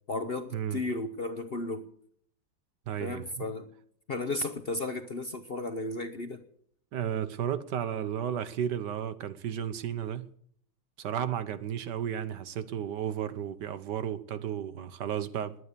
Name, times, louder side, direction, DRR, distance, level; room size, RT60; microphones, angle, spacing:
voice 1, 0.1-1.9 3.0-3.7 4.1-6.4, left 2 dB, 40° left, 0.9 m, -34 dB
voice 2, 2.9-3.5 6.9-10.3 11.0-15.6, right 9 dB, 70° right, 1.5 m, -33 dB
20.5 x 9.7 x 6.8 m
omnidirectional pair, 2.0 m